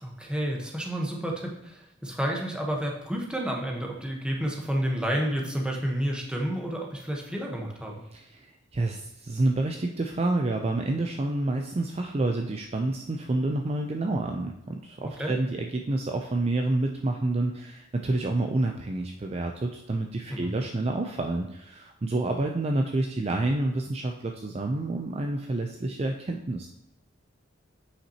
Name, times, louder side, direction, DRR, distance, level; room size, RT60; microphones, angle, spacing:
voice 1, 0.0-8.0 15.0-15.3 20.3-20.5, equal, 5° right, -1 dB, 1.1 m, -30 dB
voice 2, 8.1-26.7, right 2 dB, 30° right, 3 dB, 0.5 m, -28 dB
8.0 x 5.9 x 2.9 m, 0.89 s
head